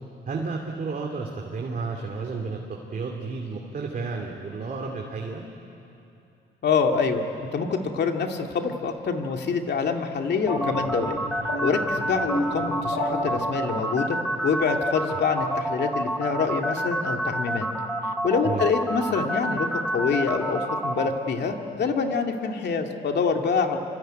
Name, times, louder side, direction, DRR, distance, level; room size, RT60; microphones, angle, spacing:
voice 1, 0.3-5.4 15.1-15.2 18.4-18.6, right 4 dB, 45° right, 1 dB, 2.8 m, -32 dB
voice 2, 6.6-11.1 11.6-14.2 14.4-17.7 18.2-23.8, left 5 dB, 60° left, 3 dB, 2.5 m, -26 dB
sound 1, 10.4-13.9, left 1 dB, 80° left, 5.0 m, -32 dB
sound 2, 10.5-21.1, right 1 dB, ahead, 2.5 m, -28 dB
25.5 x 25.0 x 9.3 m, 2.7 s
cardioid pair, 90°, 20 cm